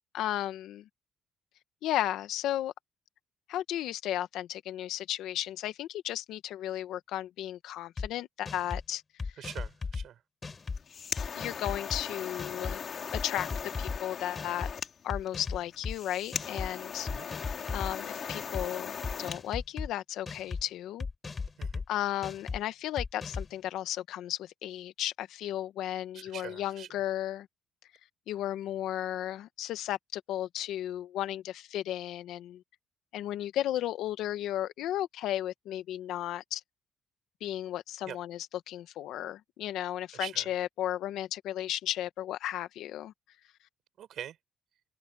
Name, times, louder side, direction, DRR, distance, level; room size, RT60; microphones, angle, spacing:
voice 1, 0.1-0.9 1.8-2.7 3.5-9.0 11.3-12.8 13.1-14.7 15.0-17.4 17.7-21.1 21.9-27.5 28.3-32.6 33.1-36.6 37.4-43.1, left 12 dB, 80° left, 1.5 m, -34 dB
sound 1, 8.0-8.1 8.5-8.8 9.2-10.0 10.4-10.8 11.2-12.0 12.4-12.8 13.1-14.0 14.4-14.7 15.1-15.9 16.3-16.7 17.1-17.9 18.3-18.7 19.0-19.9 20.3-20.6 21.0-21.8 22.2-22.6 23.0-23.5, left 4 dB, 35° left, 5.9 m, -36 dB
voice 2, 9.4-10.2 17.1-17.3 21.6-21.8 26.1-26.9 38.0-38.2 40.1-40.5 44.0-44.4, right 10 dB, 65° right, 5.7 m, -43 dB
sound 2, 10.6-19.4, left 7 dB, 50° left, 4.3 m, -39 dB
open air
cardioid pair, 85°, 0 cm